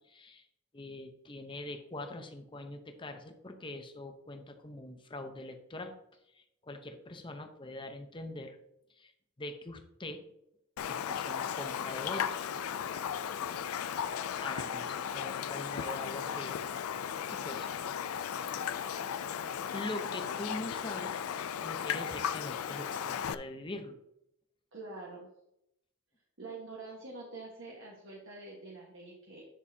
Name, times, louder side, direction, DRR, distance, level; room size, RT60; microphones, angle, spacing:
voice 1, 0.1-0.5 0.7-5.9 6.3-8.6 9.0-9.1 9.4-10.2 10.9-12.5 14.4-16.6 17.3-17.7 19.7-21.2 21.6-24.0, left 2 dB, 25° left, 6 dB, 0.8 m, -43 dB
Raindrop, 10.8-23.3, left 8 dB, 90° left, 0.4 m, -36 dB
voice 2, 24.7-25.3 26.4-29.5, right 3 dB, 60° right, -3 dB, 1.4 m, -46 dB
9.9 x 6.3 x 2.8 m, 0.81 s
head